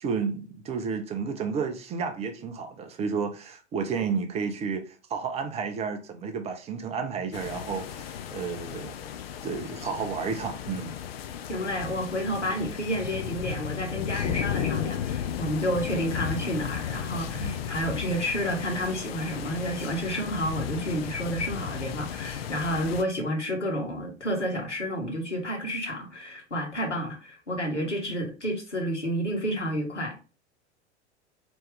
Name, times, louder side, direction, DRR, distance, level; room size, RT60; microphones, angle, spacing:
voice 1, 0.0-9.0 9.4-10.9 17.4-17.6, right 5 dB, 20° right, 0.4 m, -31 dB
sound 1, 7.3-23.0, left 9 dB, 60° left, 0.5 m, -34 dB
voice 2, 11.5-30.3, equal, 85° left, 1.4 m, -30 dB
4.4 x 3.0 x 3.3 m
figure-of-eight pair, 90°, 35 cm